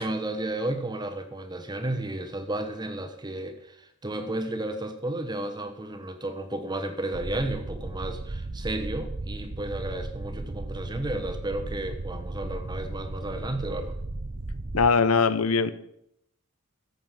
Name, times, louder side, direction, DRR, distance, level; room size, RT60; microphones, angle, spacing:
voice 1, 0.0-13.9, right 1 dB, 20° right, 6 dB, 1.2 m, -33 dB
sound 1, 7.1-14.9, right 2 dB, 35° right, 0.7 m, -35 dB
voice 2, 14.7-15.7, left 5 dB, 80° left, 14 dB, 0.9 m, -21 dB
14.0 x 7.9 x 5.9 m, 0.74 s
head